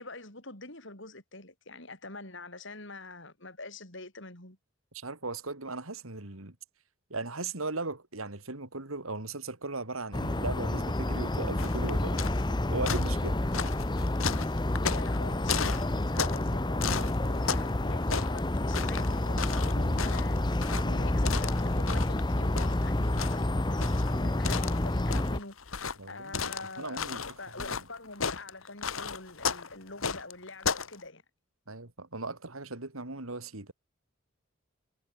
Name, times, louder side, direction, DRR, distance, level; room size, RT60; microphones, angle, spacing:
voice 1, 0.0-4.6 14.9-20.4 20.8-31.2, left 2 dB, 60° left, 7.8 m, -45 dB
voice 2, 4.9-6.5 7.1-12.2 12.7-13.4 26.0-27.2 27.6-27.8 31.7-33.7, right 3 dB, 80° right, 2.9 m, -38 dB
sound 1, 10.1-25.4, left 1 dB, 20° left, 0.8 m, -29 dB
sound 2, 11.6-12.5 12.9-16.5 16.8-17.8 18.0-22.2 22.6-30.9, left 6 dB, 75° left, 1.7 m, -34 dB
head